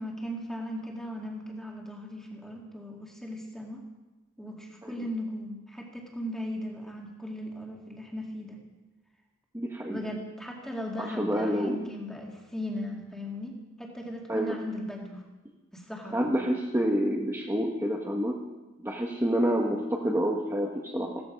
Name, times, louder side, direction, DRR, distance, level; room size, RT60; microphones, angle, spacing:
voice 1, 0.0-3.8 4.4-8.6 9.9-15.2 15.7-16.3, equal, ahead, 0 dB, 2.3 m, -37 dB
voice 2, 9.5-10.0 11.0-11.8 14.3-14.5 16.1-18.4 18.8-21.2, equal, 15° right, -2 dB, 1.3 m, -28 dB
15.5 x 14.0 x 5.3 m, 1.1 s
head